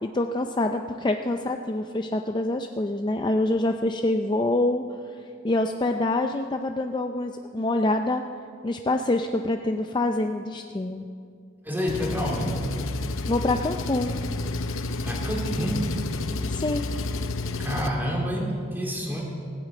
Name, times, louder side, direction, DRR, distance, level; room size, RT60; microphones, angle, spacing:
voice 1, 0.0-4.8 5.4-8.2 8.6-11.0 13.3-14.1 16.5-16.9, left 2 dB, 25° left, 5 dB, 0.5 m, -26 dB
voice 2, 11.6-12.6 15.0-16.0 17.6-19.2, equal, 10° right, -2 dB, 2.7 m, -28 dB
Engine, 11.9-17.9, left 2 dB, 85° left, 0.7 m, -30 dB
17.0 x 9.0 x 8.4 m, 2.4 s
head